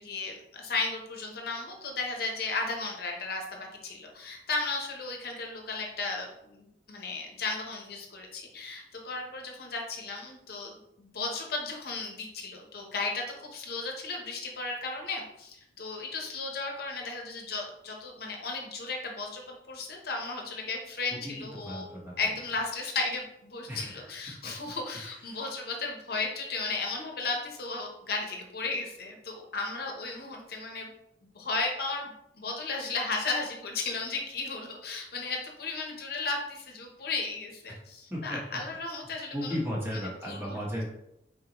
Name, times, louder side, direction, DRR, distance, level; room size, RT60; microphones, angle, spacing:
voice 1, 0.0-21.8 22.2-30.9 31.2-39.6 39.9-40.6, left 3 dB, 55° left, 1 dB, 0.8 m, -35 dB
voice 2, 21.1-22.1 23.7-24.0 24.4-24.5 24.9-25.4 38.1-38.6 39.3-40.8, equal, 15° right, -4 dB, 1.0 m, -35 dB
3.9 x 3.8 x 2.9 m, 0.80 s
head